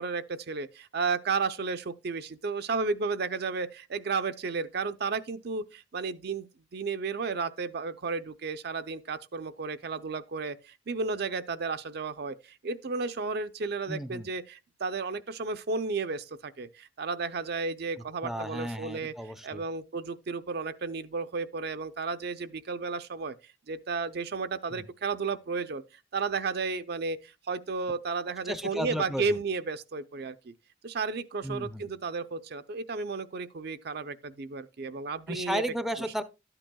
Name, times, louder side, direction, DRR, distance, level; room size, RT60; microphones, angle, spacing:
voice 1, 0.0-19.1 19.4-23.3 23.7-25.8 26.1-30.5 30.8-35.6, right 4 dB, 60° right, 0.5 m, -33 dB
voice 2, 13.9-14.3 18.2-19.6 24.7-24.8 28.5-29.4 31.4-31.9 35.3-36.2, equal, ahead, 0.5 m, -34 dB
12.0 x 8.8 x 2.2 m
head